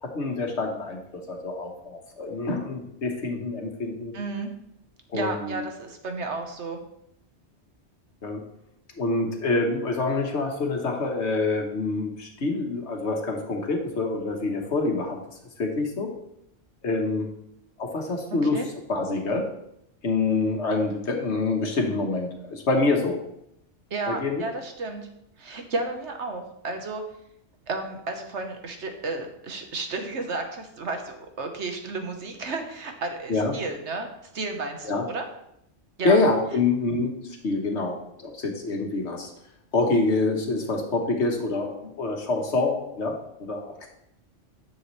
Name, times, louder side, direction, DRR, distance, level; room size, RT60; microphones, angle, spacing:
voice 1, 0.0-4.1 5.1-5.6 8.2-8.4 9.0-15.2 15.6-16.1 16.8-17.3 17.8-18.6 18.9-19.5 20.0-23.2 24.1-24.4 33.3-33.5 34.8-35.0 36.0-37.1 37.4-39.3 39.7-43.9, left 3 dB, 70° left, 3 dB, 1.6 m, -26 dB
voice 2, 4.1-4.5 5.1-6.8 18.3-18.7 23.9-25.1 25.4-27.0 27.7-35.3 36.0-36.2, right 3 dB, 75° right, 5 dB, 1.4 m, -32 dB
10.0 x 7.1 x 3.2 m, 0.78 s
omnidirectional pair, 1.2 m